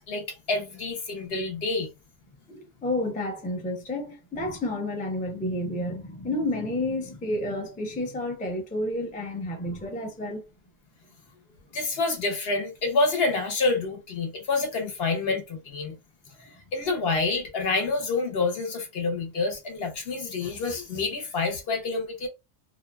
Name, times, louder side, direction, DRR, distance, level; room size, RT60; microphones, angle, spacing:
voice 1, 0.0-1.9 11.7-16.0 16.7-22.3, left 3 dB, 60° left, 1.0 m, -27 dB
voice 2, 2.5-10.4 16.4-16.5, left 1 dB, 10° left, 0.4 m, -30 dB
2.7 x 2.3 x 2.2 m
omnidirectional pair, 1.1 m